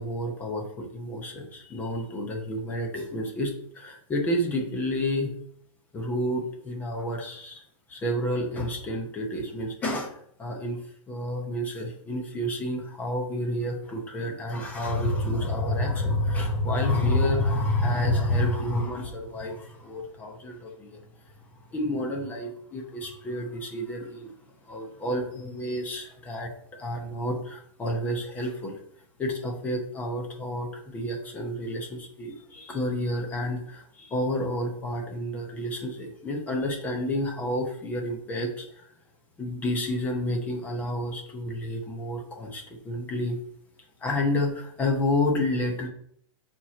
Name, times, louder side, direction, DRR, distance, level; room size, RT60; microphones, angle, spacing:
voice 1, 0.0-5.3 5.9-7.6 7.9-10.8 11.1-21.0 21.7-24.3 24.6-26.5 26.8-28.8 29.2-38.8 39.4-43.4 44.0-45.9, left 1 dB, 10° left, 1 dB, 0.8 m, -29 dB
4.6 x 4.4 x 5.8 m, 0.66 s
hypercardioid pair, 170°, 17 cm